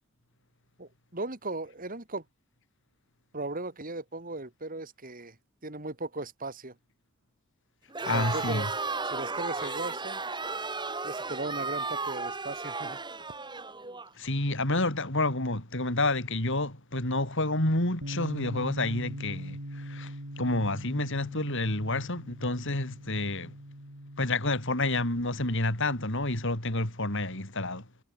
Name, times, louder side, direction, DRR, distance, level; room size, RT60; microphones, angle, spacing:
voice 1, 0.8-2.2 3.3-5.4 5.6-6.7 8.1-8.7 9.0-10.2 11.0-13.0, right 2 dB, 40° right, 2.7 m, -37 dB
Crowd, 7.9-14.1, right 3 dB, 20° right, 6.7 m, -34 dB
voice 2, 8.0-8.7 14.2-23.5 24.2-27.8, left 2 dB, 55° left, 5.0 m, -29 dB
Bass guitar, 18.0-24.3, equal, 90° right, 7.6 m, -41 dB
head